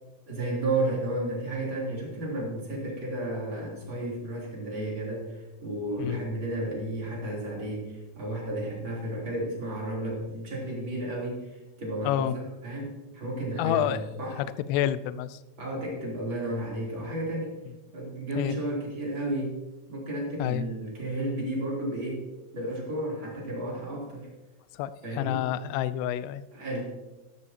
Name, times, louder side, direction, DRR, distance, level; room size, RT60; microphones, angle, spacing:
voice 1, 0.3-14.4 15.6-17.6 17.9-19.6 19.9-22.2 22.5-24.3 25.0-25.4 26.5-26.8, right 1 dB, 30° right, -4 dB, 3.8 m, -32 dB
voice 2, 12.0-12.4 13.6-14.0 14.4-15.4 18.4-18.6 20.4-20.7 24.7-26.4, left 11 dB, 85° left, 14 dB, 2.6 m, -28 dB
13.5 x 12.0 x 2.9 m, 1.1 s
omnidirectional pair, 4.9 m